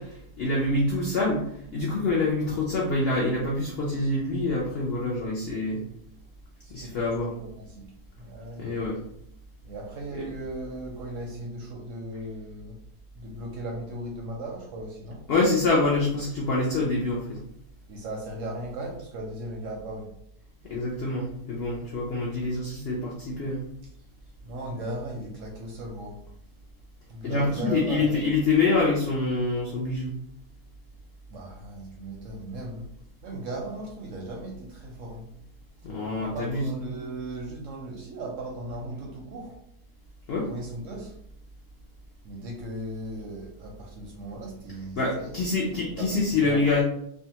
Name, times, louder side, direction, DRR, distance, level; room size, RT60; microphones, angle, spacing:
voice 1, 0.0-5.8 6.7-7.3 8.6-9.0 15.3-17.4 20.6-23.6 27.2-30.2 35.8-36.6 40.3-40.5 45.0-46.8, left 3 dB, 85° left, -3 dB, 0.5 m, -26 dB
voice 2, 6.6-8.7 9.6-12.8 13.1-15.2 17.9-20.1 24.4-26.2 27.1-28.3 31.3-32.9 33.2-35.3 36.2-39.6 40.5-41.2 42.2-45.4 45.7-46.8, right 1 dB, 70° right, -1 dB, 0.8 m, -37 dB
2.6 x 2.2 x 2.8 m, 0.72 s
omnidirectional pair, 1.7 m